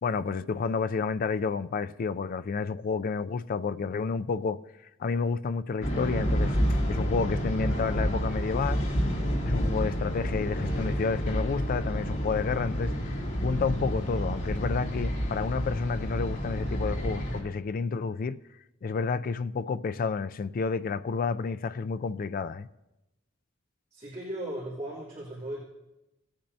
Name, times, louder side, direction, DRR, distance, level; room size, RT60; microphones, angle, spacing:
voice 1, 0.0-4.6 5.0-6.5 6.9-8.9 9.4-12.9 13.4-18.4 18.8-22.7, left 5 dB, 45° left, 0.3 m, -30 dB
sound 1, 5.8-17.4, equal, 70° left, 2.6 m, -29 dB
voice 2, 23.9-25.6, right 1 dB, 30° right, 2.8 m, -37 dB
18.0 x 8.7 x 2.7 m
head